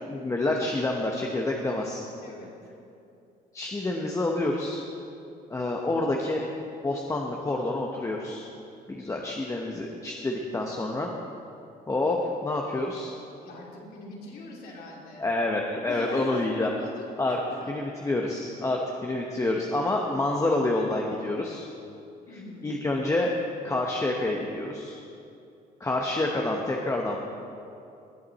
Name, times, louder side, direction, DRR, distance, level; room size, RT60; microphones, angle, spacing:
voice 1, 0.1-2.0 3.5-4.8 5.5-6.4 6.8-8.5 8.9-11.1 11.9-13.1 15.2-16.7 17.2-17.4 17.7-21.7 22.6-23.3 23.6-25.0 25.8-27.2, left 2 dB, 20° left, 0 dB, 0.9 m, -28 dB
voice 2, 13.4-15.3 15.9-17.7 18.6-18.7 22.3-22.7, left 2 dB, 65° left, -2 dB, 2.9 m, -42 dB
18.5 x 8.5 x 4.2 m, 2.6 s
cardioid pair, 110°, 17 cm